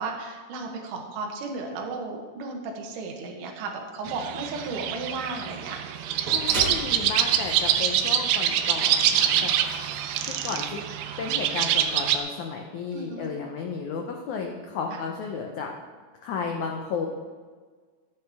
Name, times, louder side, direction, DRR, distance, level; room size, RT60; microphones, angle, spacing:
voice 1, 0.0-5.8 12.9-13.3 14.9-15.0, right 3 dB, 65° right, 1 dB, 2.4 m, -34 dB
sound 1, 4.1-12.2, right 10 dB, 90° right, 2.7 m, -25 dB
sound 2, 5.9-11.3, right 1 dB, 50° right, 1.9 m, -39 dB
voice 2, 6.3-9.5 10.2-10.8 11.2-15.7 16.2-17.1, left 5 dB, 85° left, 2 dB, 1.7 m, -33 dB
14.0 x 8.3 x 3.5 m, 1.5 s
omnidirectional pair, 4.5 m